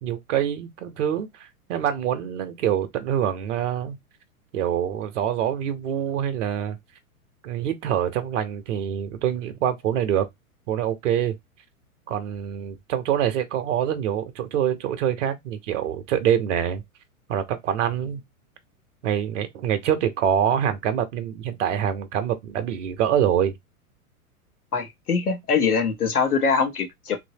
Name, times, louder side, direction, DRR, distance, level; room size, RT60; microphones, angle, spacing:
voice 1, 0.0-4.0 4.5-6.8 7.4-10.3 10.7-11.4 12.1-16.8 17.3-18.2 19.0-23.5, right 9 dB, 55° right, 0.8 m, -25 dB
voice 2, 24.7-27.2, left 5 dB, 80° left, 1.0 m, -23 dB
3.1 x 2.7 x 2.7 m
figure-of-eight pair, 105°, 44 cm